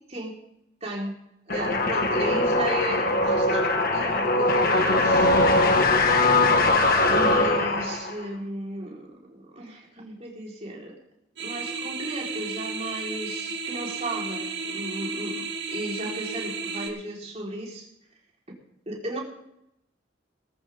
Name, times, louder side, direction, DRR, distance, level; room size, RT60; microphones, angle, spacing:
voice 1, 0.8-1.1 1.5-5.3 5.7-6.5 7.1-11.0 11.4-17.9 18.9-19.2, right 1 dB, 35° right, -2 dB, 4.2 m, -35 dB
sound 1, 1.5-8.2, left 2 dB, 50° left, 1.6 m, -21 dB
sound 2, 11.4-16.9, right 4 dB, 65° right, 2.3 m, -33 dB
19.0 x 13.5 x 3.6 m, 0.79 s
head